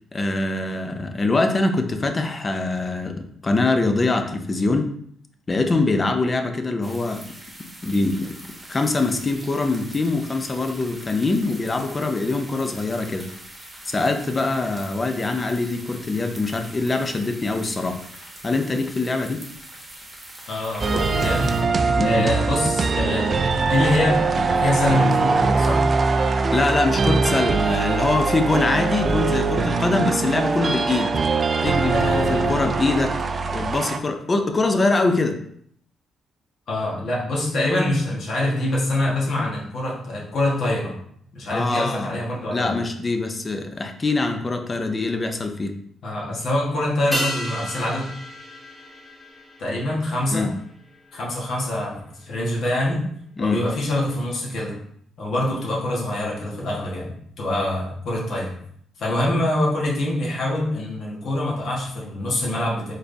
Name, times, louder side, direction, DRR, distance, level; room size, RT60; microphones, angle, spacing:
voice 1, 0.1-4.9 5.5-7.2 7.6-8.4 8.7-13.3 13.8-18.0 18.4-19.4 22.0-22.3 26.5-31.1 31.6-33.2 33.5-35.4 41.5-42.1 42.5-45.7 50.3-50.5 53.4-53.6, left 3 dB, 30° left, 6 dB, 0.5 m, -23 dB
sound 1, 6.8-21.6, right 1 dB, 15° right, 1.1 m, -43 dB
voice 2, 20.5-21.5 22.0-25.8 31.9-32.7 36.7-41.0 41.3-42.8 46.0-48.1 49.6-50.5 51.1-53.0 53.4-54.8 55.2-58.5 59.0-62.9, left 1 dB, 65° left, -3 dB, 1.2 m, -25 dB
sound 2, 20.8-34.0, right 4 dB, 40° right, 0.3 m, -22 dB
sound 3, 47.1-51.8 52.1-52.2, equal, 5° left, 1.5 m, -33 dB
4.1 x 3.3 x 2.6 m, 0.66 s
cardioid pair, 90°, 0 cm